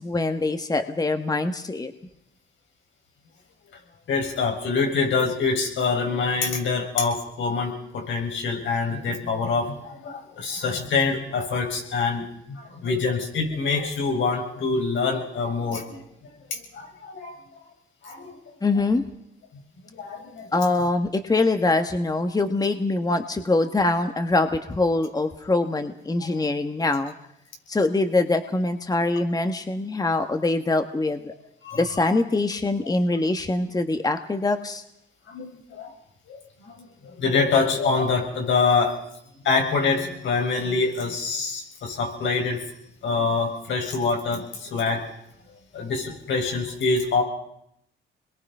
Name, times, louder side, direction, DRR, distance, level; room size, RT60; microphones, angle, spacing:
voice 1, 0.0-1.9 18.6-19.0 20.5-27.1 27.7-31.3 31.7-34.8, left 2 dB, 20° left, 8 dB, 1.5 m, -24 dB
voice 2, 4.1-16.0 16.5-17.4 18.0-18.3 19.9-20.5 26.3-26.4 31.6-32.1 35.3-35.9 36.3-36.4 36.6-36.8 37.0-39.0 39.4-42.6 43.0-45.0 45.7-47.2, left 4 dB, 75° left, 2 dB, 6.9 m, -25 dB
27.5 x 22.0 x 5.6 m, 0.75 s
cardioid pair, 90°, 20 cm